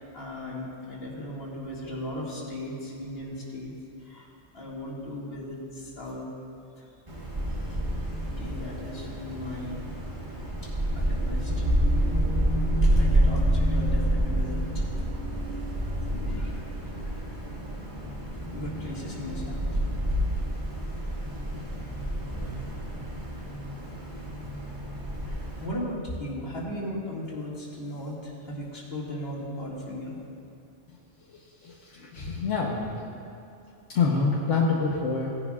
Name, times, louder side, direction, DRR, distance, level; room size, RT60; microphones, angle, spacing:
voice 1, 0.1-6.3 6.8-6.9 7.5-7.8 8.2-9.8 10.6-11.7 12.1-12.2 12.8-15.4 15.8-17.4 18.3-19.8 21.3-21.5 21.7-21.8 23.3-23.4 25.2-30.2, left 1 dB, 50° left, -5 dB, 2.4 m, -38 dB
Wind, 7.1-25.7, right 1 dB, 40° right, 2.2 m, -28 dB
voice 2, 31.3-33.0 33.9-35.3, left 4 dB, 75° left, -4 dB, 1.4 m, -27 dB
18.0 x 11.0 x 2.4 m, 2.6 s
omnidirectional pair, 1.3 m